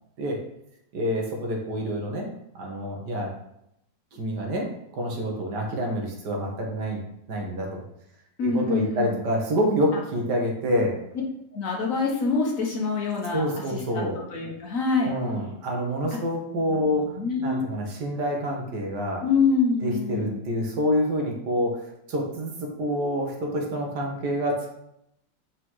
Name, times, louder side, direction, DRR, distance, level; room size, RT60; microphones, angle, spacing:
voice 1, 0.9-2.3 2.6-3.4 4.1-7.0 7.3-7.8 8.4-11.0 13.3-14.2 15.0-17.1 17.4-19.2 19.8-24.7, equal, 75° right, 0 dB, 1.8 m, -27 dB
voice 2, 8.4-9.2 9.9-10.0 11.5-15.1 16.1-16.2 16.7-17.6 19.2-20.4, left 4 dB, 55° left, -1 dB, 1.4 m, -26 dB
7.5 x 4.8 x 3.1 m, 0.79 s
omnidirectional pair, 1.9 m